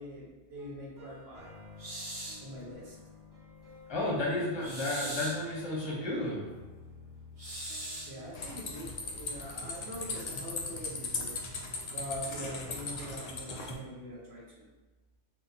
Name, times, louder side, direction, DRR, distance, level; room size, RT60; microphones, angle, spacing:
voice 1, 0.0-1.5 2.4-2.9 8.1-11.4 11.9-14.7, equal, 65° right, -4 dB, 1.0 m, -43 dB
sound 1, 0.5-13.6, left 1 dB, 25° right, 1.0 m, -52 dB
sound 2, 1.8-2.5 4.6-5.5 7.4-8.2, right 1 dB, 50° right, 1.2 m, -40 dB
voice 2, 3.9-6.4, left 1 dB, 25° left, -5 dB, 0.8 m, -32 dB
sound 3, 8.3-13.8, left 3 dB, 80° left, 0.3 m, -38 dB
2.8 x 2.2 x 3.9 m, 1.1 s
omnidirectional pair, 1.2 m